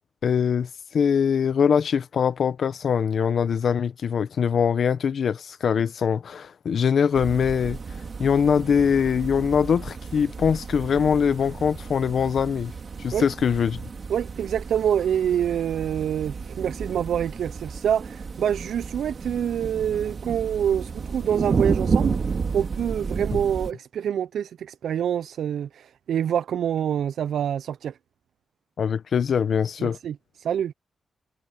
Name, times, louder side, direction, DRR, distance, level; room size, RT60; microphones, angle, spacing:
voice 1, 0.2-7.8 8.2-12.7 13.0-13.8 28.8-30.0, left 7 dB, 55° left, 0.8 m, -22 dB
sound 1, 7.1-23.7, right 5 dB, 40° right, 2.0 m, -31 dB
voice 2, 14.1-28.0 29.8-30.7, right 9 dB, 85° right, 0.3 m, -26 dB
wide cardioid pair, 155°, 0 cm